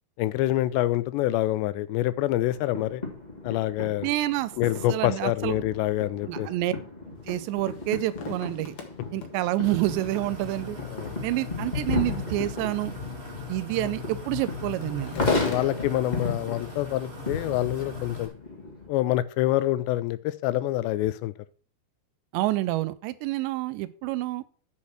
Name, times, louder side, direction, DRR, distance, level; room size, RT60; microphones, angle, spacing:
voice 1, 0.2-3.0 3.4-4.1 4.6-6.5 10.9-11.1 15.2-18.3 18.9-21.3, left 15 dB, 85° left, 2.8 m, -26 dB
sound 1, 2.5-18.9, left 3 dB, 20° left, 1.1 m, -35 dB
voice 2, 4.0-4.5 4.9-5.6 6.3-6.7 7.3-8.7 9.1-10.8 11.2-12.9 13.5-15.1 22.3-24.4, right 16 dB, 80° right, 2.9 m, -28 dB
sound 2, 7.2-18.3, left 5 dB, 65° left, 1.4 m, -48 dB
sound 3, 9.6-18.3, left 3 dB, 40° right, 0.8 m, -39 dB
8.5 x 6.5 x 5.8 m
omnidirectional pair, 5.1 m